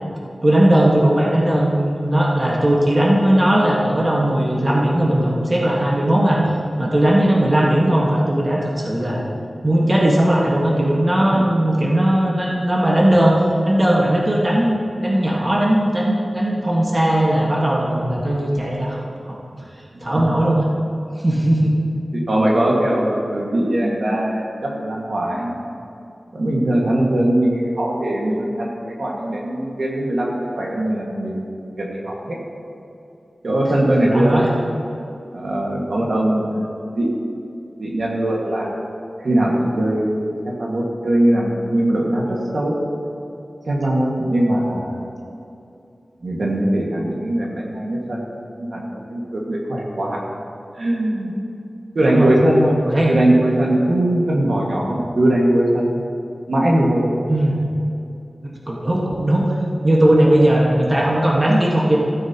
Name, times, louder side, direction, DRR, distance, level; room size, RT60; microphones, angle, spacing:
voice 1, 0.4-6.4 6.8-9.2 9.6-13.4 13.6-19.4 20.0-20.7 21.2-21.7 34.1-34.5 52.0-52.3 52.8-53.1 57.3-57.7 58.4-59.5 59.8-62.0, right 1 dB, 30° right, -4 dB, 1.6 m, -18 dB
voice 2, 19.9-20.4 22.1-25.6 26.3-31.5 31.8-32.4 33.4-34.6 35.3-36.7 36.9-37.2 37.8-38.8 39.2-42.8 43.7-45.1 46.2-50.2 50.7-51.3 51.9-56.0 56.5-57.1 57.4-57.6, right 1 dB, 70° right, -3 dB, 1.9 m, -20 dB
15.5 x 9.0 x 3.0 m, 2.7 s
wide cardioid pair, 85°, 0 cm